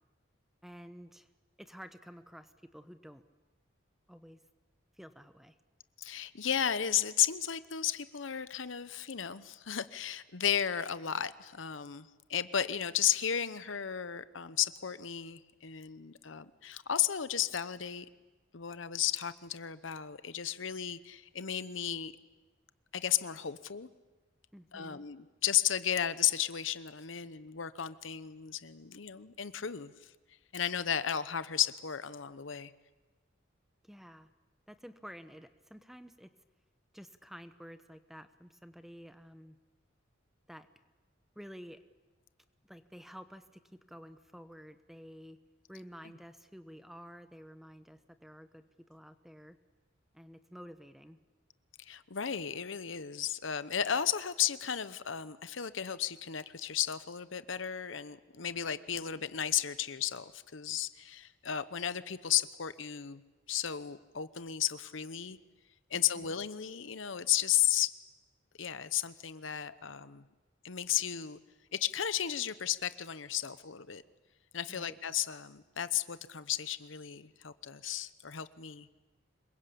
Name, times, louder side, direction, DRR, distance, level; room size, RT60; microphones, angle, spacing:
voice 1, 0.6-1.3 1.6-3.2 4.1-4.4 5.0-5.6 24.5-25.0 33.8-34.3 34.7-36.3 36.9-39.6 40.5-40.7 41.3-41.8 42.7-45.4 45.7-49.6 50.1-51.2 66.1-66.3 74.7-75.0, equal, ahead, 10 dB, 0.9 m, -51 dB
voice 2, 6.0-18.1 18.5-22.1 22.9-23.9 24.7-29.9 30.5-32.7 51.8-63.2 63.5-65.4 65.9-67.9 68.6-70.2 70.6-71.4 71.7-74.0 74.5-78.9, left 10 dB, 75° left, 14 dB, 0.9 m, -34 dB
26.0 x 22.5 x 8.5 m, 1.2 s
head